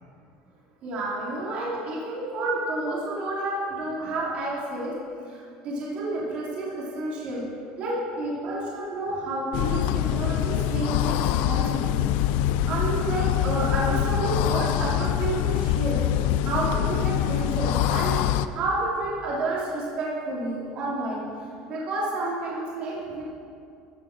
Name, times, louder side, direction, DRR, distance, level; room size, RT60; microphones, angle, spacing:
voice 1, 0.8-4.9 5.3-7.4 7.8-12.0 12.6-16.0 16.4-21.2 21.6-23.2, right 2 dB, 45° right, -5 dB, 3.2 m, -30 dB
sound 1, 9.5-18.5, left 11 dB, 65° left, 0.5 m, -24 dB
15.5 x 7.7 x 6.1 m, 2.5 s
cardioid pair, 155°, 3 cm